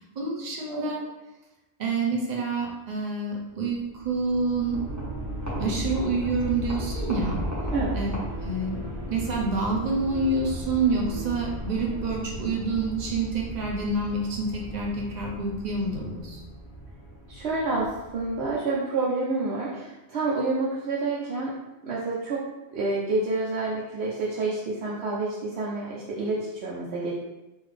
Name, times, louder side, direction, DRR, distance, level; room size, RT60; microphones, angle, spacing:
voice 1, 0.1-1.0 1.8-4.8 5.6-7.4 7.9-8.1 8.4-8.8 9.1-16.4, right 3 dB, 45° right, -2 dB, 0.8 m, -27 dB
sound 1, 3.6-18.5, left 1 dB, 40° left, 1.5 m, -38 dB
sound 2, 4.7-16.0, equal, 15° right, 0.9 m, -37 dB
voice 2, 7.7-8.0 17.3-21.5 21.8-27.1, right 3 dB, 75° right, -6 dB, 0.9 m, -28 dB
3.8 x 2.6 x 3.2 m, 1.0 s
omnidirectional pair, 1.1 m